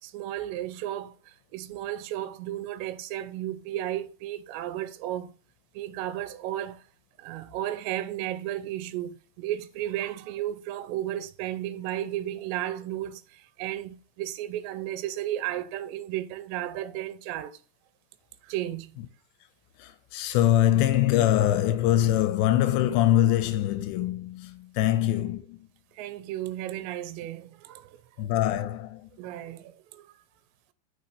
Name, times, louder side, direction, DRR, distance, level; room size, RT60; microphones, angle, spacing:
voice 1, 0.0-5.3 5.7-6.8 7.2-17.6 18.4-19.0 26.0-28.3 29.2-30.1, right 13 dB, 85° right, 2.8 m, -34 dB
voice 2, 19.8-25.7 28.2-29.1, left 12 dB, 85° left, 3.0 m, -23 dB
8.3 x 6.5 x 3.0 m
omnidirectional pair, 5.1 m